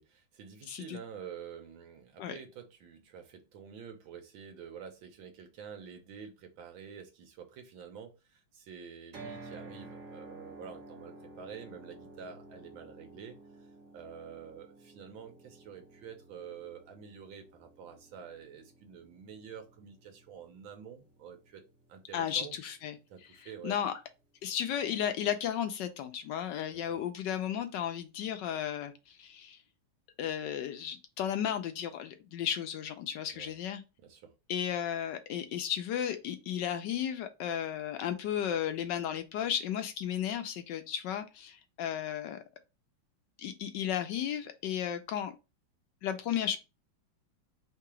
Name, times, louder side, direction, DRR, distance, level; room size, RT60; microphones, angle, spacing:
voice 1, 0.0-13.7 13.9-21.6 21.9-22.6 23.1-23.8 26.9-27.0 33.3-33.5 34.0-34.3, right 7 dB, 75° right, 1.7 m, -48 dB
voice 2, 0.7-1.0 2.2-2.4 22.1-23.0 23.4-24.0 24.4-29.6 30.2-33.8 34.5-42.4 43.4-45.3 46.0-46.6, left 9 dB, 75° left, 1.1 m, -34 dB
sound 1, 9.1-23.3, right 2 dB, 50° right, 1.3 m, -53 dB
3.7 x 2.8 x 4.7 m
omnidirectional pair, 2.2 m